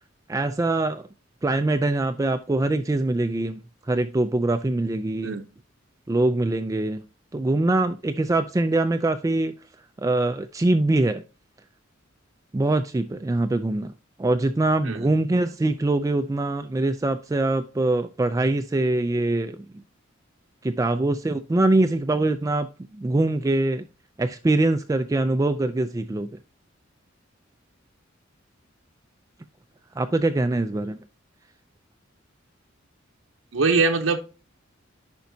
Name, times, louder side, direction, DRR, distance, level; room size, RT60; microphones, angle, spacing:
voice 1, 0.3-1.1 1.4-5.3 6.1-7.0 7.3-9.5 10.0-11.2 12.5-13.9 14.2-19.6 20.6-22.7 22.9-23.9 24.2-26.3 30.0-31.0, right 2 dB, 15° right, 0.3 m, -23 dB
voice 2, 33.5-34.2, right 4 dB, 80° right, 0.7 m, -21 dB
10.5 x 5.2 x 2.7 m
head